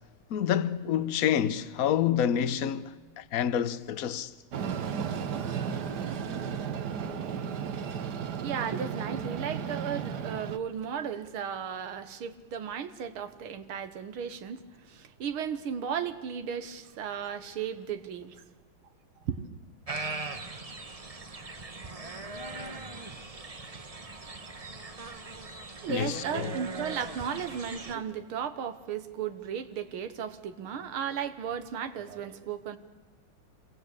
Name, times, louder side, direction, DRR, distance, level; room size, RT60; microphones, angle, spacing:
voice 1, 0.3-4.3 25.9-26.6, left 9 dB, 55° left, 1.1 m, -28 dB
Train, 4.5-10.6, right 7 dB, 55° right, 1.6 m, -34 dB
voice 2, 8.4-18.4 19.3-19.4 25.8-32.8, right 7 dB, 80° right, 2.1 m, -35 dB
sound 1, 19.9-27.9, right 3 dB, 25° right, 0.9 m, -40 dB
27.5 x 22.5 x 8.6 m
omnidirectional pair, 2.3 m